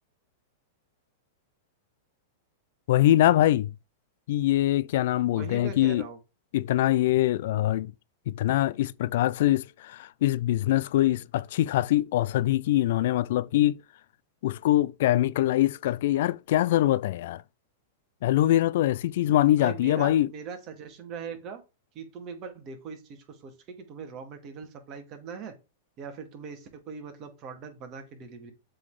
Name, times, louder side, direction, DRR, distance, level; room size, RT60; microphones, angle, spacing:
voice 1, 2.9-3.7 4.3-6.0 6.5-7.9 8.3-13.8 14.4-17.4 18.2-20.3, left 14 dB, 65° left, 0.3 m, -23 dB
voice 2, 5.3-6.2 19.6-21.6 21.9-25.5 26.0-28.5, right 6 dB, 40° right, 2.1 m, -40 dB
7.6 x 4.0 x 4.8 m
hypercardioid pair, 125°, 0 cm